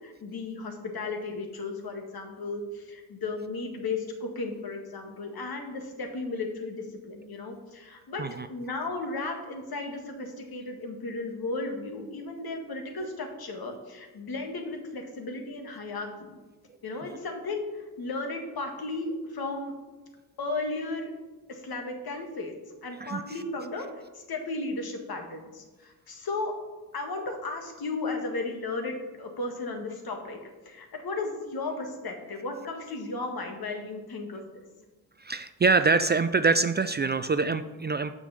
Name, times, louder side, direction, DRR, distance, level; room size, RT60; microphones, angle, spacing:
voice 1, 0.0-8.2 8.5-16.4 16.8-19.7 20.4-21.1 21.5-22.5 22.8-23.9 24.1-26.5 26.9-30.4 30.6-34.6, left 3 dB, 65° left, 3 dB, 1.6 m, -35 dB
voice 2, 23.0-23.4 35.2-38.1, right 4 dB, 25° right, 11 dB, 0.4 m, -25 dB
6.2 x 5.2 x 6.8 m, 1.3 s
supercardioid pair, 50°, 40 cm